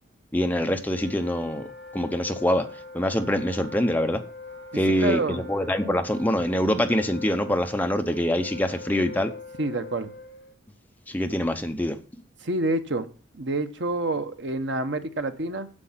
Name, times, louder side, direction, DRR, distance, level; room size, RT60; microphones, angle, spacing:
voice 1, 0.3-1.7 1.9-2.7 2.9-4.2 4.7-9.3 11.1-12.0, left 1 dB, 10° left, 6 dB, 0.7 m, -24 dB
Wind instrument woodwind instrument, 0.6-10.5, left 3 dB, 55° left, 2.7 m, -42 dB
voice 2, 5.0-5.4 9.6-10.1 12.4-13.1 13.3-15.7, right 2 dB, 60° right, 8 dB, 1.1 m, -27 dB
9.8 x 7.7 x 5.8 m, 0.37 s
head